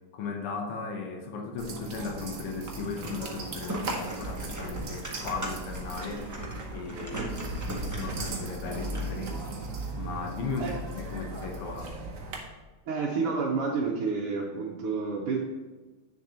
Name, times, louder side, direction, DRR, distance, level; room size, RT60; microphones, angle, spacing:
voice 1, 0.1-6.4 6.7-7.3 7.7-9.6 9.9-12.0, left 4 dB, 85° left, 3 dB, 1.9 m, -36 dB
sound 1, 1.6-12.4, right 2 dB, 50° right, 1.1 m, -37 dB
sound 2, 3.6-9.2, right 1 dB, 25° right, 0.3 m, -40 dB
voice 2, 12.9-15.4, right 4 dB, 85° right, -4 dB, 1.9 m, -30 dB
8.6 x 6.7 x 2.9 m, 1.2 s
omnidirectional pair, 2.4 m